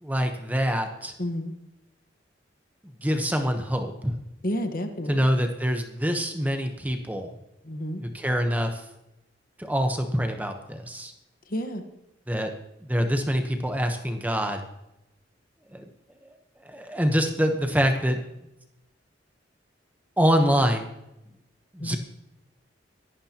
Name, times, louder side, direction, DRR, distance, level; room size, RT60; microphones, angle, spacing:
voice 1, 0.0-1.1 3.0-4.1 5.1-7.3 8.0-8.8 9.6-11.1 12.3-12.5 12.8-14.6 15.7-15.8 16.6-18.2 20.2-20.9 21.7-22.0, equal, 10° right, 5 dB, 0.9 m, -25 dB
voice 2, 1.2-1.5 4.4-5.3 7.6-8.0 11.5-11.8 21.8-22.0, equal, 50° left, 6 dB, 1.3 m, -30 dB
22.5 x 11.5 x 2.9 m, 0.88 s
head